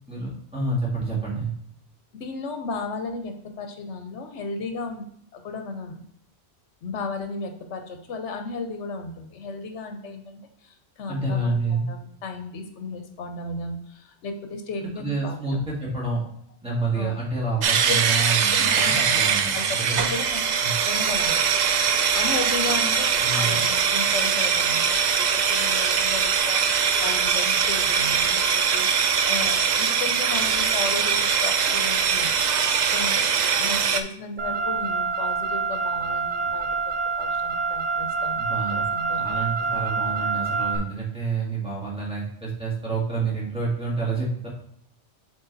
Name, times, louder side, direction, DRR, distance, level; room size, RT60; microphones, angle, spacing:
voice 1, 0.1-1.5 11.1-11.9 15.0-16.2 16.6-19.5 19.9-20.1 20.6-20.7 23.2-23.6 38.4-38.8 39.2-44.5, right 3 dB, 5° right, -6 dB, 2.2 m, -28 dB
voice 2, 2.1-6.0 6.8-15.6 16.9-17.1 17.7-18.0 18.5-19.2 19.5-20.6 20.8-21.9 22.1-32.3 32.9-38.4 38.7-39.2, left 3 dB, 80° left, 6 dB, 1.2 m, -35 dB
sound 1, 17.6-34.0, right 6 dB, 55° right, 0.5 m, -22 dB
Car, 34.4-40.8, right 4 dB, 85° right, 1.2 m, -26 dB
8.1 x 3.5 x 4.0 m, 0.71 s
omnidirectional pair, 1.2 m